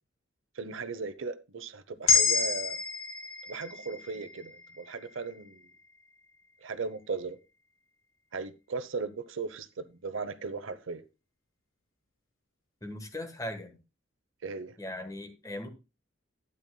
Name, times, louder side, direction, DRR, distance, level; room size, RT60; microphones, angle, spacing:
voice 1, 0.6-2.8 3.5-5.6 6.6-7.4 8.3-11.0 14.4-14.7, right 4 dB, 75° right, 0.8 m, -37 dB
sound 1, 2.1-6.3, left 5 dB, 90° left, 1.4 m, -30 dB
voice 2, 12.8-13.8 14.8-15.7, left 1 dB, 15° left, 1.3 m, -39 dB
12.5 x 9.1 x 2.3 m
head